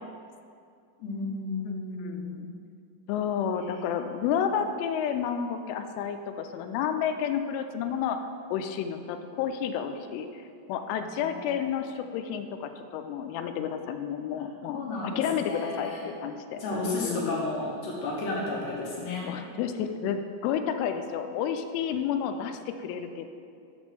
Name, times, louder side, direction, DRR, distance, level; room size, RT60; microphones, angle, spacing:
voice 1, 1.0-2.4 10.9-11.6 14.7-16.1 16.5-19.3, left 2 dB, 75° left, -4 dB, 2.6 m, -33 dB
voice 2, 1.6-2.5 3.1-8.2 8.5-10.4 10.7-17.4 19.3-23.3, left 8 dB, 90° left, 7 dB, 3.0 m, -31 dB
6.8 x 6.2 x 5.8 m, 2.4 s
omnidirectional pair, 5.4 m